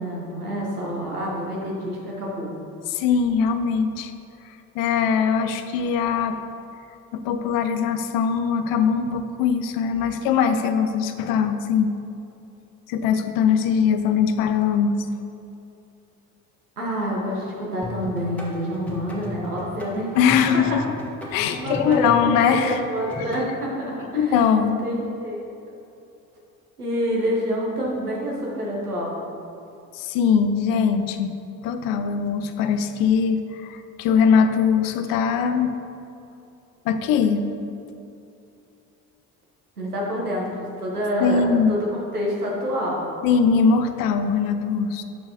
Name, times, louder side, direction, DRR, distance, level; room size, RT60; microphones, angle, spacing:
voice 1, 0.0-2.5 16.8-20.1 20.5-20.6 21.5-22.1 22.4-25.4 26.8-29.1 39.8-43.0, equal, 85° right, -3 dB, 1.2 m, -27 dB
voice 2, 2.9-4.1 4.7-6.4 7.1-11.9 12.9-15.0 20.2-21.0 21.3-22.8 24.1-24.8 29.9-31.4 31.6-35.8 36.8-37.5 41.2-41.8 43.2-45.0, left 6 dB, 50° left, 8 dB, 0.6 m, -21 dB
sound 1, 17.8-23.4, left 1 dB, 5° left, 1.5 m, -35 dB
12.0 x 4.5 x 3.0 m, 2.7 s
figure-of-eight pair, 50°, 44 cm